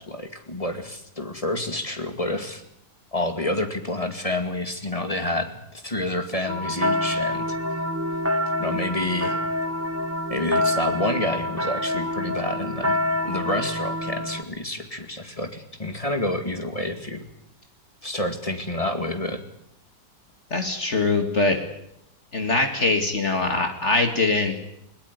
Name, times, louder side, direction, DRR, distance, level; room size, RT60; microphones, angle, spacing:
voice 1, 0.0-2.6 3.1-7.6 8.6-9.4 10.3-13.0 13.2-17.2 18.0-19.4, left 1 dB, 20° left, 7 dB, 2.2 m, -28 dB
sound 1, 6.5-14.4, left 1 dB, 10° right, 1.1 m, -26 dB
voice 2, 20.5-21.6 22.3-24.6, left 3 dB, 40° left, 6 dB, 2.5 m, -22 dB
21.0 x 19.0 x 9.6 m, 0.77 s
omnidirectional pair, 1.9 m